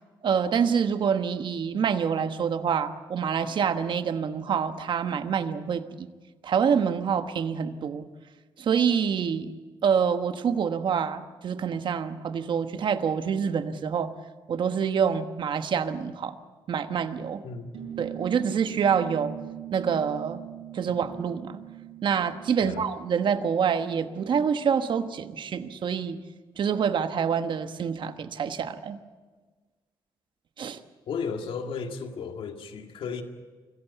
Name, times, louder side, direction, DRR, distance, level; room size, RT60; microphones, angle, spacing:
voice 1, 0.2-6.1 6.4-8.0 8.6-9.5 9.8-14.1 14.5-16.4 16.7-17.4 18.0-19.3 19.7-20.4 20.7-21.6 22.0-26.2 26.6-29.0 30.6-30.8, right 7 dB, 60° right, 9 dB, 1.2 m, -26 dB
voice 2, 17.4-17.9 22.6-22.8 31.1-33.2, left 5 dB, 75° left, 5 dB, 1.9 m, -34 dB
sound 1, 17.7-24.7, right 13 dB, 90° right, 3.5 m, -42 dB
25.0 x 15.0 x 8.2 m, 1.4 s
cardioid pair, 100°, 9 cm